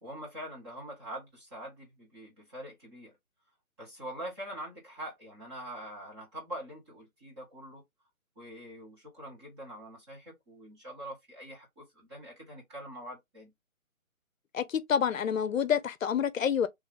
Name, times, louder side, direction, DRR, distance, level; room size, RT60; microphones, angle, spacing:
voice 1, 0.0-3.1 3.8-7.8 8.4-13.5, right 1 dB, 20° right, 1.3 m, -44 dB
voice 2, 14.5-16.7, left 8 dB, 65° left, 0.6 m, -28 dB
3.2 x 2.7 x 3.8 m
hypercardioid pair, 165°, 42 cm